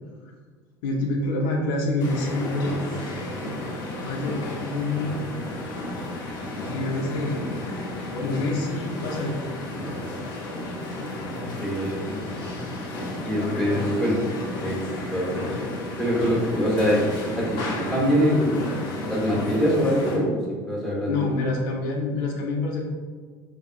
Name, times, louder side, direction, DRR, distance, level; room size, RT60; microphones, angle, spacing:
voice 1, 0.8-2.8 4.0-5.3 6.6-7.6 8.1-9.4 9.8-10.0 13.4-13.9 21.1-22.8, left 2 dB, 80° left, -1 dB, 0.6 m, -27 dB
sound 1, 2.0-20.2, left 1 dB, 50° left, 0.8 m, -32 dB
voice 2, 11.6-12.2 13.2-14.2 14.6-14.8 15.1-15.7 16.0-18.5 19.1-21.4, equal, ahead, -5 dB, 1.2 m, -24 dB
3.5 x 2.6 x 2.4 m, 1.5 s
supercardioid pair, 105°, 10 cm